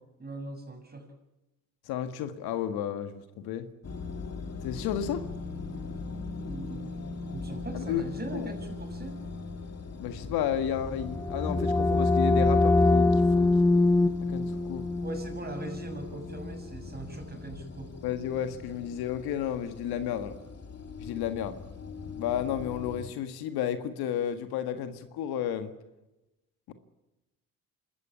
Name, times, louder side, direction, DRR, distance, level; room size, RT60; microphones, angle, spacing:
voice 1, 0.2-1.1 6.5-7.0 7.3-9.2 15.0-17.9 22.0-22.1, right 2 dB, 25° right, 6 dB, 6.7 m, -41 dB
voice 2, 1.9-3.7 4.6-5.2 7.7-8.0 8.3-8.5 10.0-13.5 14.3-14.8 18.0-20.3 21.0-21.6 22.2-25.7 26.7-26.8, left 9 dB, 80° left, 9 dB, 1.8 m, -32 dB
sound 1, 3.8-23.1, left 3 dB, 45° left, 2.5 m, -40 dB
sound 2, 11.0-16.6, left 2 dB, 5° left, 0.8 m, -24 dB
27.0 x 13.5 x 8.5 m, 0.99 s
supercardioid pair, 60°, 37 cm